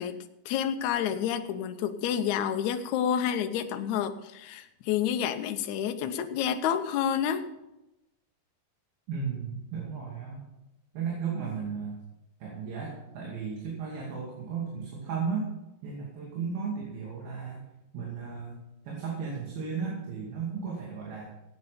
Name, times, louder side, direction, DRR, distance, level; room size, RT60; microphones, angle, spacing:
voice 1, 0.0-7.5, left 9 dB, 70° left, 7 dB, 1.8 m, -29 dB
voice 2, 9.1-10.4 10.9-12.0 12.4-15.5 15.8-17.7 17.9-18.6 18.9-21.3, right 5 dB, 75° right, -3 dB, 4.3 m, -35 dB
16.0 x 9.3 x 5.1 m, 0.93 s
omnidirectional pair, 4.3 m